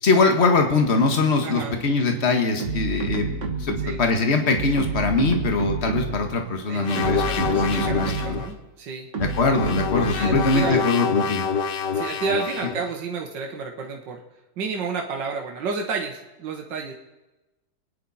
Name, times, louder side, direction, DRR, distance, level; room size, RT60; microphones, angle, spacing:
voice 1, 0.0-8.4 9.2-11.5, left 3 dB, 40° left, 4 dB, 1.8 m, -22 dB
voice 2, 1.4-1.8 3.8-4.0 6.7-9.1 10.2-10.8 11.9-14.2 14.6-16.9, right 5 dB, 80° right, 1 dB, 1.9 m, -31 dB
sound 1, 2.6-4.1 4.5-6.3 6.8-8.5 9.1-10.7, right 3 dB, 45° right, 1.7 m, -29 dB
sound 2, 6.8-8.5 9.2-12.9, left 6 dB, 75° left, 1.6 m, -27 dB
27.0 x 10.0 x 4.2 m, 1.1 s
omnidirectional pair, 1.9 m